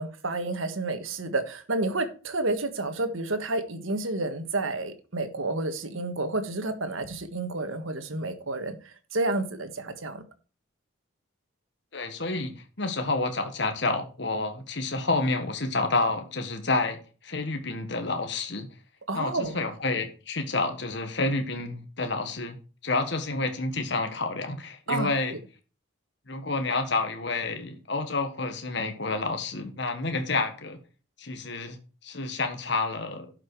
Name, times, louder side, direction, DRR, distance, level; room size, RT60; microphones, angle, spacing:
voice 1, 0.0-8.8 9.1-10.2 19.1-19.6 24.9-25.1, right 2 dB, 80° right, 1.5 m, -30 dB
voice 2, 11.9-18.7 19.1-22.6 22.8-25.3 26.3-30.8 31.2-33.3, left 3 dB, 55° left, 1.4 m, -29 dB
11.5 x 5.9 x 4.7 m
head